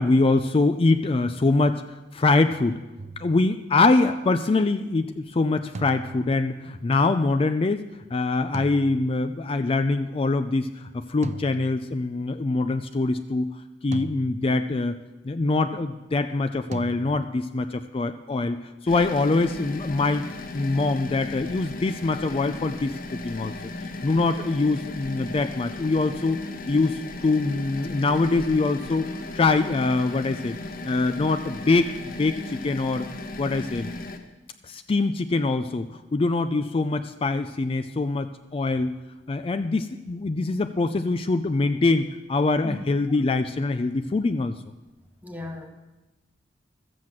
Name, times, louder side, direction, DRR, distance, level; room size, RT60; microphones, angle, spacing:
voice 1, 0.0-1.8 2.1-2.8 3.2-7.8 8.1-13.5 13.8-15.0 15.2-20.3 20.5-23.5 24.0-26.4 26.7-29.1 29.3-30.5 30.8-31.9 32.2-33.1 33.4-33.9 34.6-38.9 39.3-44.5, left 3 dB, 30° left, 9 dB, 0.4 m, -24 dB
sound 1, 3.0-4.0 5.7-6.9 8.5-9.7 11.2-12.4 13.9-15.1 16.7-17.6, right 3 dB, 40° right, 0.4 m, -40 dB
sound 2, 18.9-34.2, left 2 dB, 50° left, 1.1 m, -36 dB
voice 2, 45.2-45.7, left 2 dB, 10° right, 4 dB, 1.2 m, -35 dB
13.0 x 7.7 x 7.5 m, 1.1 s
head